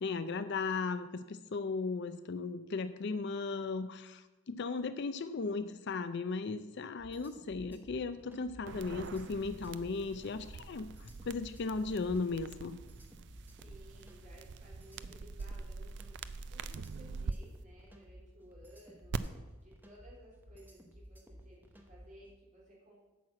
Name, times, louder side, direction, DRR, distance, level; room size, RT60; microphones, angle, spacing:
voice 1, 0.0-12.8, left 4 dB, 50° left, 12 dB, 0.4 m, -36 dB
sound 1, 7.0-22.2, equal, 10° right, 0.8 m, -55 dB
sound 2, 8.7-17.3 19.1-19.2, right 4 dB, 50° right, 0.4 m, -44 dB
voice 2, 13.6-19.2 19.6-22.9, equal, 35° right, -6 dB, 3.6 m, -58 dB
8.6 x 5.8 x 7.7 m, 1.1 s
head